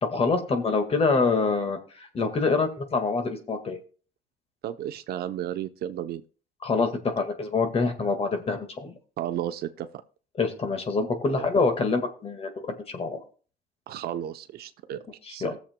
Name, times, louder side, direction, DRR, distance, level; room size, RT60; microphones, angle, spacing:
voice 1, 0.0-3.8 6.6-8.9 10.4-13.2 15.3-15.5, left 4 dB, 35° left, 1.8 m, -26 dB
voice 2, 4.6-6.2 9.2-9.9 11.3-11.5 13.9-15.0 15.3-15.6, right 11 dB, 70° right, 0.7 m, -33 dB
19.5 x 7.2 x 2.2 m
cardioid pair, 110°, 17 cm